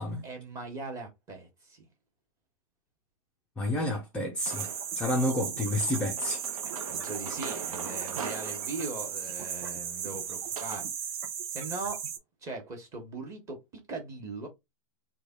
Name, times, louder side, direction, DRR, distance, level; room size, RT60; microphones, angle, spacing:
voice 1, 0.2-1.9 6.9-11.1 11.5-12.1 12.4-14.5, right 3 dB, 15° right, 1.2 m, -40 dB
voice 2, 3.6-4.7 5.0-6.4, left 1 dB, 5° left, 0.4 m, -29 dB
sound 1, 4.4-12.2, right 8 dB, 45° right, 0.7 m, -36 dB
sound 2, 4.5-5.1 5.8-10.9, right 5 dB, 85° right, 0.7 m, -42 dB
3.2 x 2.3 x 3.6 m
hypercardioid pair, 145°, 18 cm